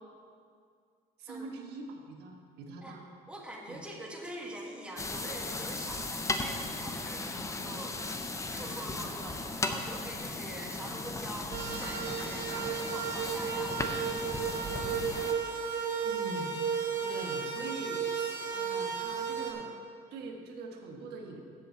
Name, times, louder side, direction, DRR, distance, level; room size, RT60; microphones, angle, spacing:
voice 1, 1.2-3.0 3.7-3.8 16.0-16.5 17.0-19.7 20.1-21.4, right 3 dB, 75° right, 2 dB, 1.4 m, -43 dB
voice 2, 3.3-8.0 8.5-13.9 14.4-15.5, right 1 dB, 5° right, -2 dB, 1.6 m, -45 dB
sound 1, 5.0-15.3, left 2 dB, 20° left, 0.7 m, -37 dB
sound 2, 11.5-19.5, right 6 dB, 55° right, 2.2 m, -34 dB
7.9 x 6.8 x 7.0 m, 2.2 s
cardioid pair, 110°, 17 cm